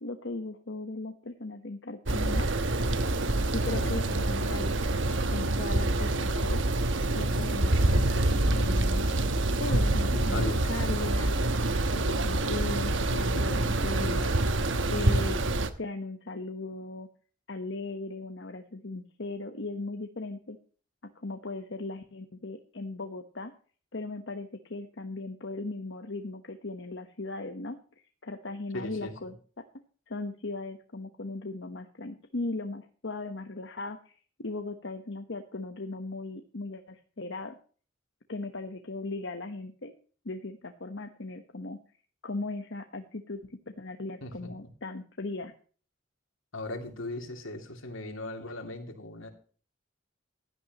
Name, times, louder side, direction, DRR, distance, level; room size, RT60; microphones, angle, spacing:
voice 1, 0.0-2.5 3.5-6.6 7.1-9.0 9.5-11.3 11.9-15.5 15.8-17.1 17.5-20.6 21.1-23.5 23.9-27.8 28.2-29.3 30.1-37.6 38.3-39.9 40.2-41.8 42.2-43.4 43.8-45.5, left 2 dB, 60° left, 6 dB, 1.1 m, -38 dB
sound 1, 2.1-15.7, right 2 dB, 65° right, 1.1 m, -26 dB
voice 2, 10.1-10.7 28.7-29.3 44.2-44.7 46.5-49.3, left 2 dB, 80° left, 5 dB, 2.6 m, -38 dB
16.0 x 12.0 x 3.0 m, 0.41 s
head